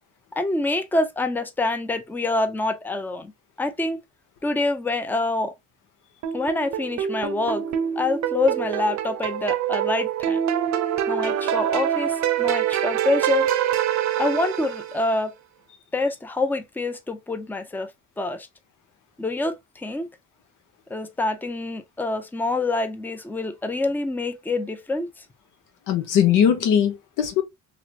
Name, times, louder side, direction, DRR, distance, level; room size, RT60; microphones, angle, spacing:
voice 1, 0.3-3.3 3.6-4.0 4.4-5.5 6.3-7.6 8.0-10.4 11.1-13.5 14.2-15.3 15.9-17.9 18.2-18.5 19.2-20.1 20.9-25.3, left 2 dB, 5° left, 0.5 m, -26 dB
sound 1, 6.2-15.1, right 10 dB, 65° right, 0.6 m, -25 dB
voice 2, 25.9-27.4, left 9 dB, 85° left, 1.0 m, -20 dB
3.0 x 2.9 x 2.4 m
cardioid pair, 90°, 30 cm